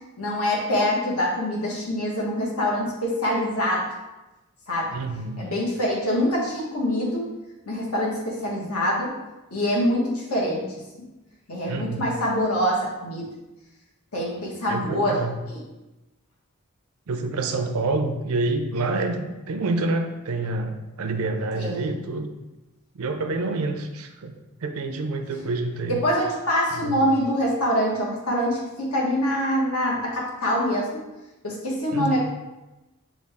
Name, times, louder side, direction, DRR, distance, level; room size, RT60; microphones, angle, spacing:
voice 1, 0.2-3.9 4.7-4.9 5.4-7.3 7.7-9.1 9.5-10.8 11.5-13.3 14.1-15.2 15.5-15.6 21.5-22.0 25.9-31.0 31.4-32.2, equal, 85° left, -4 dB, 1.3 m, -25 dB
voice 2, 4.9-5.5 11.7-12.1 14.7-15.4 17.1-22.3 22.9-26.0 26.8-27.1 31.9-32.2, right 3 dB, 80° right, 6 dB, 0.5 m, -28 dB
6.2 x 2.4 x 3.5 m, 1.0 s
head